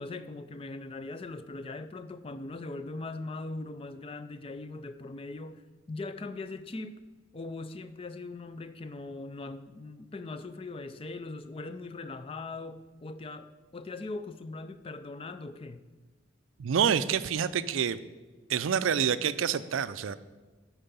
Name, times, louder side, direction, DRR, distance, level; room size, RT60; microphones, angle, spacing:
voice 1, 0.0-5.6 5.9-6.9 7.3-15.8, left 3 dB, 30° left, 11 dB, 0.4 m, -40 dB
voice 2, 16.6-18.0 18.5-20.2, right 7 dB, 80° right, 14 dB, 0.4 m, -27 dB
8.9 x 4.7 x 6.9 m, 1.3 s
head